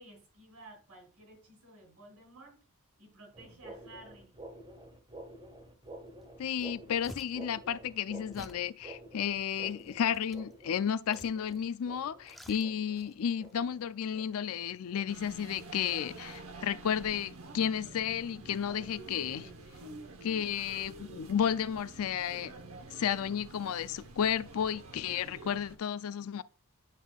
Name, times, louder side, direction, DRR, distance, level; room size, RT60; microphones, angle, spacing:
voice 1, 0.0-2.6 3.0-4.3, right 1 dB, 85° right, 3.8 m, -54 dB
sound 1, 3.3-16.1 16.4-16.7 17.2-17.5 17.9-18.1 18.7-18.8 19.4-19.5, right 1 dB, 25° right, 1.5 m, -51 dB
sound 2, 6.2-6.3 6.6-7.5 8.3-8.7 9.4-10.5 11.1-11.7 12.0-13.1 13.4-13.5, equal, ahead, 0.4 m, -51 dB
voice 2, 6.4-19.5 20.2-22.5 22.9-26.4, left 8 dB, 70° left, 0.4 m, -32 dB
sound 3, 15.1-25.8, right 3 dB, 65° right, 1.0 m, -48 dB
9.7 x 5.5 x 2.3 m
head